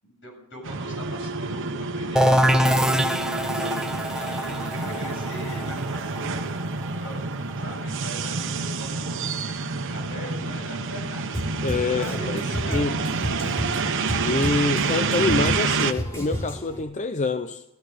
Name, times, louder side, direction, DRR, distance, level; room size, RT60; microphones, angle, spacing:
voice 1, 0.0-9.4 9.7-13.4, equal, 60° left, 1 dB, 7.5 m, -41 dB
sound 1, 0.6-15.9, right 4 dB, 60° right, 1.1 m, -28 dB
sound 2, 2.2-7.7, equal, 5° right, 0.7 m, -24 dB
Drum kit, 11.3-16.8, equal, 15° left, 3.9 m, -32 dB
voice 2, 11.6-12.4 12.7-12.9 14.2-17.6, left 3 dB, 35° left, 10 dB, 0.6 m, -26 dB
15.5 x 13.5 x 6.6 m, 0.89 s
head